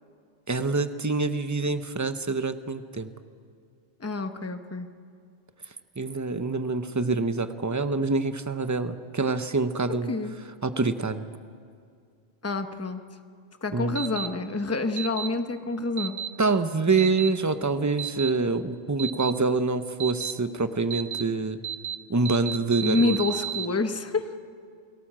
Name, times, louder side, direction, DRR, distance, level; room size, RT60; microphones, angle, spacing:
voice 1, 0.5-3.1 6.0-10.1 10.6-11.3 13.7-14.0 16.4-21.6 22.1-23.2, right 3 dB, 20° right, 10 dB, 0.7 m, -26 dB
voice 2, 4.0-4.9 10.1-10.3 12.4-13.0 13.6-16.2 22.8-24.3, left 3 dB, 15° left, 8 dB, 0.9 m, -27 dB
sound 1, 14.0-14.3 15.0-15.3 16.0-16.3 17.0-17.3 18.0-18.3 19.0-19.3 20.0-20.3 20.9-21.2 21.6-22.0 22.3-23.7, right 10 dB, 80° right, 1.2 m, -32 dB
29.0 x 18.0 x 7.5 m, 2.2 s
omnidirectional pair, 1.2 m